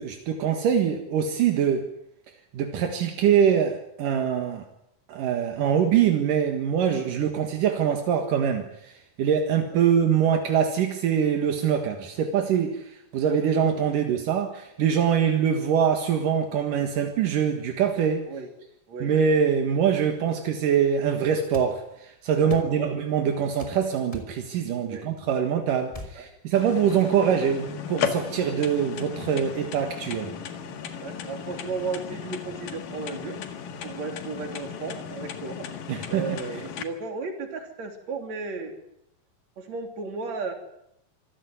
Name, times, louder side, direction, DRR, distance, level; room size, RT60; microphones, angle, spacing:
voice 1, 0.0-1.9 2.5-4.7 5.1-18.3 19.0-30.4 35.9-36.4, right 8 dB, 75° right, 5 dB, 3.3 m, -24 dB
voice 2, 13.5-14.2 15.2-15.3 18.3-18.5 18.9-19.1 22.4-22.9 24.8-25.1 26.2-26.3 26.8-27.0 31.0-33.4 33.8-35.8 36.1-38.7 39.6-40.5, right 4 dB, 55° right, 5 dB, 4.4 m, -35 dB
sound 1, 21.5-21.7 22.5-22.7 23.6-23.8 24.1-24.3 25.9-26.2, left 1 dB, 10° left, 2.9 m, -39 dB
sound 2, 26.6-36.8, left 7 dB, 90° left, 3.5 m, -35 dB
25.5 x 16.5 x 9.4 m, 0.79 s
omnidirectional pair, 3.8 m